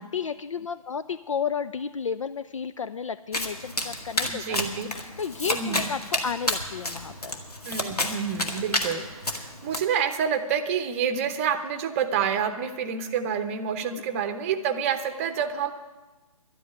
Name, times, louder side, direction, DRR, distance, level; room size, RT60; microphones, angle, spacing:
voice 1, 0.0-4.6 4.9-7.3 13.8-14.0, left 6 dB, 60° left, 13 dB, 0.5 m, -32 dB
Domestic sounds home sounds, 3.3-9.8, left 1 dB, 85° left, 2.0 m, -30 dB
voice 2, 4.2-4.9 5.5-5.9 7.6-15.7, right 7 dB, 20° right, 10 dB, 0.8 m, -28 dB
12.0 x 8.5 x 9.8 m, 1.2 s
figure-of-eight pair, 140°, 19 cm